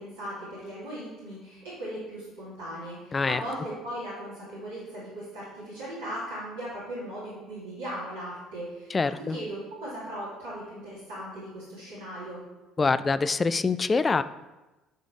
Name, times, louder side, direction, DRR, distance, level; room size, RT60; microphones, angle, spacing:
voice 1, 0.0-12.4, right 1 dB, 70° right, -9 dB, 2.5 m, -38 dB
voice 2, 8.9-9.4 12.8-14.2, left 4 dB, 25° left, 14 dB, 0.3 m, -25 dB
9.1 x 4.1 x 4.7 m, 1.1 s
figure-of-eight pair, 55°, 0 cm